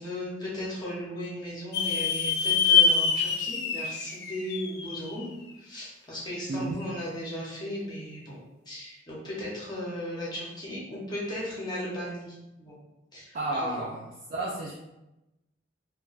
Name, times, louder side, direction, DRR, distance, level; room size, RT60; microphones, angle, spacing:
voice 1, 0.0-5.3 5.6-8.4 8.7-12.8 13.1-13.9, equal, 20° left, -6 dB, 0.7 m, -36 dB
sound 1, 1.7-5.2, left 6 dB, 55° left, 0.3 m, -25 dB
voice 2, 6.5-6.8 13.3-14.0 14.3-14.7, right 2 dB, 45° right, -4 dB, 0.4 m, -31 dB
2.2 x 2.2 x 3.8 m, 0.95 s
head